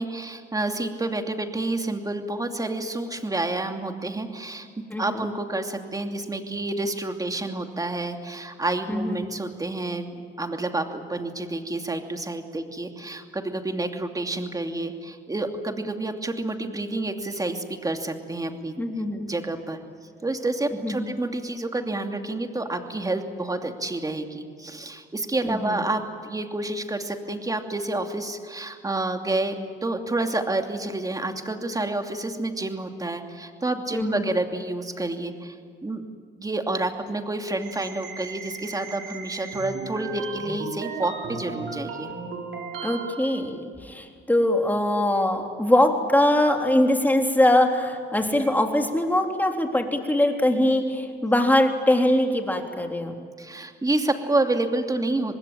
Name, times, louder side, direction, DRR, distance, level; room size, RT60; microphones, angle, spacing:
voice 1, 0.0-18.8 19.2-19.8 20.2-29.5 29.8-35.6 35.8-36.0 36.4-42.1 53.4-55.4, right 2 dB, 15° right, 5 dB, 2.7 m, -29 dB
voice 2, 4.9-5.2 8.9-9.2 18.8-19.3 20.8-21.1 25.4-25.8 33.9-34.2 42.8-53.1, left 1 dB, 10° left, 3 dB, 3.7 m, -22 dB
sound 1, 37.6-43.5, right 4 dB, 75° right, 4.8 m, -36 dB
25.5 x 20.5 x 8.9 m, 2.2 s
cardioid pair, 90°, 20 cm